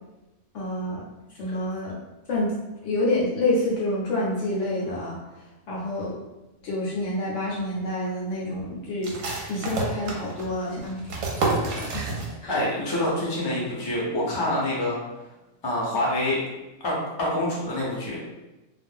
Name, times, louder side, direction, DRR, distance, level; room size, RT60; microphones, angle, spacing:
voice 1, 0.5-1.0 1.4-2.0 2.3-2.5 2.8-5.2 5.7-6.2 6.6-9.1 9.5-11.0 11.6-12.1 12.4-12.6, left 1 dB, 65° left, -4 dB, 0.9 m, -27 dB
sound 1, 9.0-12.7 12.9-13.0 13.5-13.9, right 3 dB, 70° right, 0.9 m, -30 dB
voice 2, 12.5-15.0 15.6-16.4 16.8-18.2, left 1 dB, 30° left, -5 dB, 0.5 m, -26 dB
2.5 x 2.2 x 3.5 m, 1.0 s
omnidirectional pair, 1.5 m